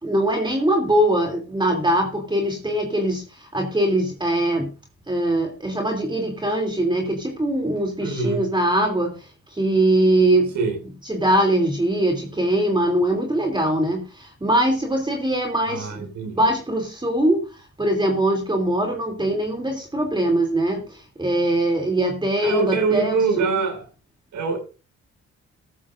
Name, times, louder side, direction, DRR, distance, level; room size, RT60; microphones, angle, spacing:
voice 1, 0.0-4.7 5.1-10.5 11.0-16.1 16.3-23.2, right 1 dB, 15° right, 3.0 m, -22 dB
voice 2, 8.0-8.5 10.5-10.8 15.7-16.3 22.4-23.8 24.3-24.6, right 4 dB, 75° right, 7.2 m, -24 dB
14.5 x 14.0 x 2.6 m
cardioid pair, 90°, 30 cm